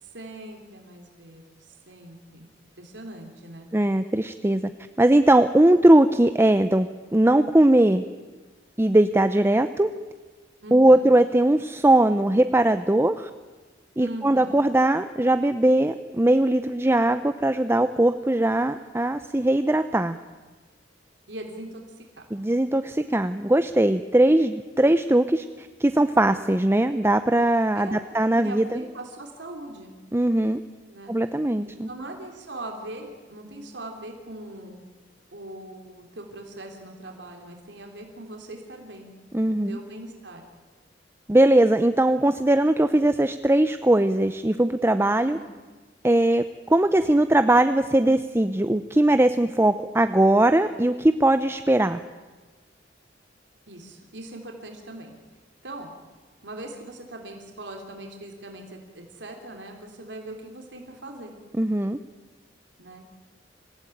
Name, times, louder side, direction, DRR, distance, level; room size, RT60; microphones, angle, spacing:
voice 1, 0.0-2.5 2.8-3.7 10.6-11.1 14.0-14.6 21.3-22.2 27.7-28.0 28.3-30.0 30.9-31.1 31.6-34.8 35.3-39.1 39.5-40.4 45.2-45.5 53.7-55.1 55.6-55.9 56.4-61.3 62.8-63.0, right 1 dB, 70° right, 3 dB, 3.5 m, -40 dB
voice 2, 3.7-4.7 5.0-8.0 8.8-9.9 10.7-13.3 14.0-20.2 22.3-28.8 30.1-30.6 31.1-31.9 39.3-39.8 41.3-45.4 46.0-46.4 46.7-52.0 61.6-62.0, right 1 dB, 15° right, 10 dB, 0.6 m, -20 dB
26.0 x 16.5 x 9.3 m, 1.3 s
head